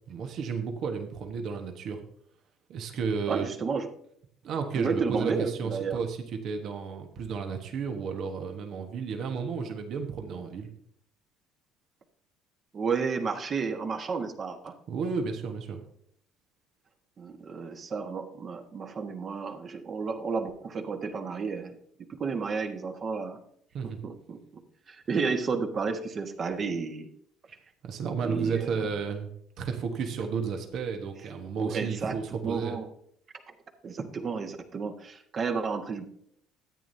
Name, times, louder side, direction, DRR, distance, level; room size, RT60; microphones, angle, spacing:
voice 1, 0.1-2.0 2.7-3.5 4.4-10.7 14.9-15.8 23.7-24.0 27.8-29.3 29.6-32.8, right 5 dB, 60° right, 4 dB, 1.4 m, -32 dB
voice 2, 3.3-3.9 4.7-6.0 12.7-14.8 17.2-21.7 22.1-23.4 24.0-24.4 24.9-27.1 28.2-28.9 31.6-32.2 32.4-32.9 33.8-36.1, right 5 dB, 40° right, 5 dB, 1.5 m, -32 dB
13.5 x 8.9 x 2.8 m, 0.67 s
hypercardioid pair, 60°, 0 cm